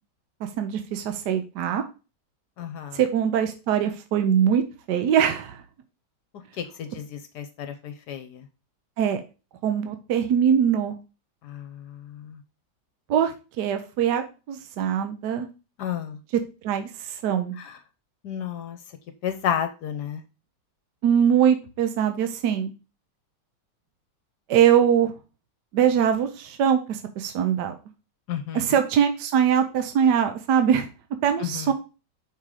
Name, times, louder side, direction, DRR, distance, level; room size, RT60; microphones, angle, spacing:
voice 1, 0.6-1.8 2.9-4.6 4.9-5.6 9.0-9.2 9.6-11.0 13.1-15.5 16.6-17.6 21.0-22.7 24.5-25.1 25.7-27.8 28.5-30.9 31.2-31.7, right 8 dB, 70° right, 7 dB, 1.3 m, -22 dB
voice 2, 2.6-3.0 6.6-8.4 11.4-12.4 15.8-16.2 17.6-17.8 18.2-18.8 19.2-20.2 28.3-28.8 31.4-31.7, left 9 dB, 70° left, 9 dB, 1.2 m, -32 dB
5.6 x 3.8 x 4.8 m, 0.31 s
omnidirectional pair, 1.9 m